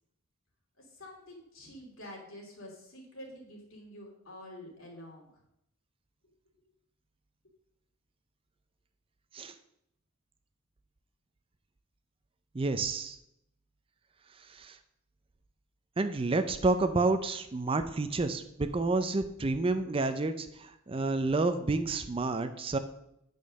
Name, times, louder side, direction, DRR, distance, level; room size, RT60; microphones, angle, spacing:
voice 1, 0.8-5.3, left 1 dB, 65° left, -1 dB, 2.8 m, -48 dB
voice 2, 12.5-13.2 14.4-14.8 16.0-22.8, right 3 dB, 25° right, 9 dB, 0.4 m, -29 dB
9.0 x 5.3 x 6.3 m, 0.79 s
head